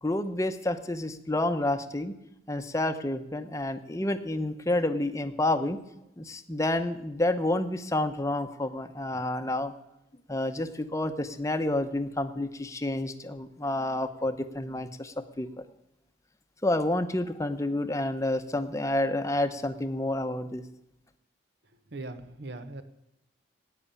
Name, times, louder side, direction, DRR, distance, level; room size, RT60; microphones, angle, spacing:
voice 1, 0.0-2.2 2.5-5.8 6.2-9.7 10.3-15.6 16.6-20.6, left 1 dB, 15° left, 8 dB, 0.8 m, -29 dB
voice 2, 21.9-22.8, right 2 dB, 60° right, 11 dB, 1.1 m, -39 dB
11.0 x 9.2 x 8.5 m, 0.87 s
head